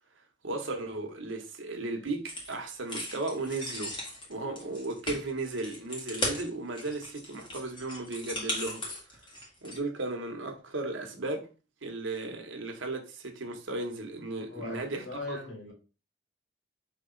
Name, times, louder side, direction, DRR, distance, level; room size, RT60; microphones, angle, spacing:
voice 1, 0.4-4.0 4.3-8.8 9.6-11.5 11.8-15.4, right 2 dB, 85° right, 1.1 m, -35 dB
sound 1, 2.3-2.5 2.9-9.8, left 1 dB, 25° left, 1.2 m, -37 dB
voice 2, 14.5-15.7, left 3 dB, 75° left, 2.3 m, -39 dB
4.8 x 3.0 x 3.8 m
head